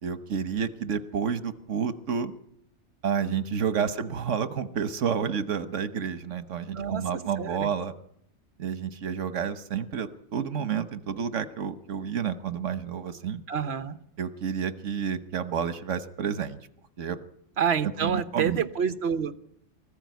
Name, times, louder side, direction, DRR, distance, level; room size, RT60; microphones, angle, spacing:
voice 1, 0.0-2.3 3.0-7.9 8.6-13.4 14.2-16.6 17.0-17.2 18.0-18.6, right 7 dB, 80° right, 12 dB, 1.4 m, -30 dB
voice 2, 6.7-7.7 13.5-14.0 17.6-19.4, right 7 dB, 60° right, 12 dB, 1.3 m, -28 dB
20.0 x 14.5 x 9.3 m, 0.71 s
omnidirectional pair, 1.2 m